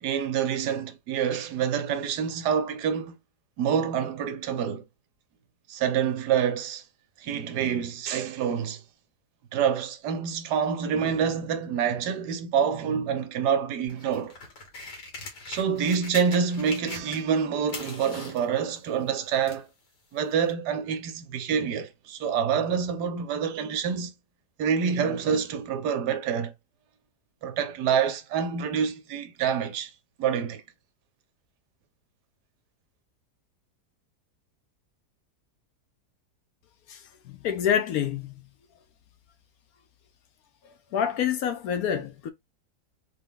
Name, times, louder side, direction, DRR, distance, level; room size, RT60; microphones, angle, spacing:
voice 1, 0.0-3.2 3.6-4.8 5.7-6.8 7.2-8.8 9.5-14.4 15.5-19.7 20.1-24.1 24.6-26.5 27.4-29.9 30.2-30.6, right 7 dB, 80° right, 1.3 m, -27 dB
sound 1, 13.9-17.4 17.7-19.7 20.5-20.6, left 3 dB, 90° left, 1.8 m, -41 dB
voice 2, 36.9-38.3 40.9-42.3, left 8 dB, 70° left, 1.0 m, -27 dB
3.6 x 2.2 x 3.6 m
omnidirectional pair, 1.8 m